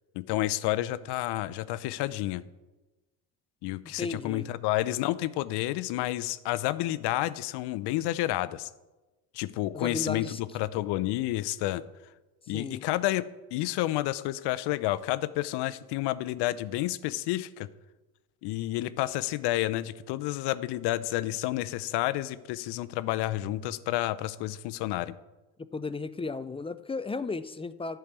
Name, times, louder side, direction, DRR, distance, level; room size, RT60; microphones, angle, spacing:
voice 1, 0.1-2.4 3.6-8.7 9.3-11.8 12.5-13.3 13.5-17.7 18.4-25.2, left 16 dB, 65° left, 15 dB, 0.7 m, -30 dB
voice 2, 4.0-4.5 9.7-10.4 12.5-12.8 25.7-28.0, left 3 dB, 15° left, 14 dB, 0.4 m, -34 dB
11.5 x 4.7 x 8.1 m, 1.1 s
hypercardioid pair, 70°, 45 cm